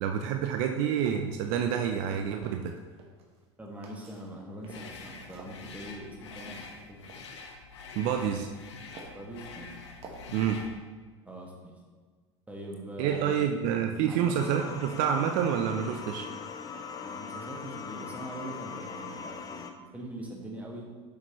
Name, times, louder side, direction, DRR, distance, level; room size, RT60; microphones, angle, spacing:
voice 1, 0.0-2.7 8.0-8.5 10.3-10.6 13.0-16.3, right 8 dB, 60° right, 5 dB, 0.6 m, -28 dB
sound 1, 0.7-1.7 2.6-3.4 3.8-5.0 5.3-7.2 7.7-8.5 8.9-9.3 10.0-10.4, right 3 dB, 40° right, 1.6 m, -50 dB
voice 2, 3.6-6.6 6.9-7.0 9.1-9.7 11.3-11.8 12.5-13.5 14.1-14.8 17.0-20.9, right 1 dB, 10° right, -2 dB, 1.9 m, -42 dB
sound 2, 4.7-10.8, left 4 dB, 80° left, 0.9 m, -46 dB
sound 3, 14.3-19.7, left 5 dB, 25° left, 0.7 m, -41 dB
8.4 x 6.6 x 3.1 m, 1.5 s
hypercardioid pair, 85°, 15 cm